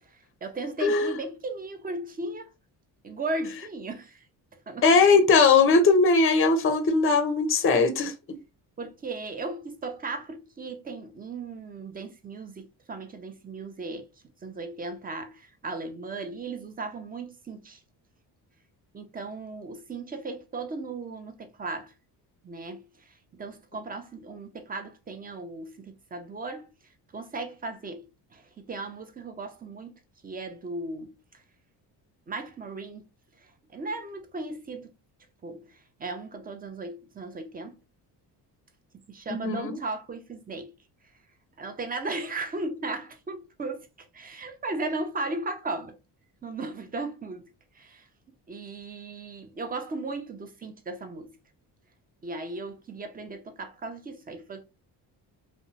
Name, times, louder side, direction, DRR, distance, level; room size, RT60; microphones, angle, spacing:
voice 1, 0.1-2.5 3.0-4.3 4.7-4.8 8.8-14.1 14.4-17.8 18.9-21.9 22.4-22.9 23.3-26.7 27.1-28.1 28.3-29.9 30.2-31.1 32.3-33.0 33.7-34.9 35.4-37.8 39.1-40.7 41.6-45.9 46.4-48.1 48.5-51.3 52.2-54.7, right 3 dB, 20° right, 0.5 m, -36 dB
voice 2, 0.8-1.1 4.8-8.1 39.4-39.7, left 4 dB, 30° left, 0.6 m, -20 dB
2.6 x 2.2 x 2.7 m
supercardioid pair, 75°, 44 cm